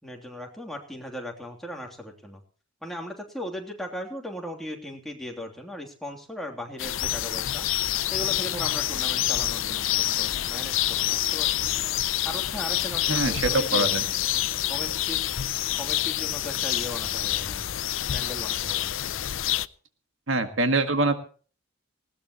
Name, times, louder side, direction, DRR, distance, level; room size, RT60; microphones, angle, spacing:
voice 1, 0.0-2.4 2.8-7.7 8.1-11.8 12.2-13.9 14.7-15.2 15.7-17.6 18.1-18.9, left 1 dB, ahead, 1 dB, 3.1 m, -38 dB
sound 1, 6.8-19.7, left 13 dB, 70° left, 0.6 m, -27 dB
voice 2, 13.1-14.0 20.3-21.1, right 2 dB, 65° right, 7 dB, 1.8 m, -24 dB
20.0 x 18.0 x 3.1 m, 0.41 s
head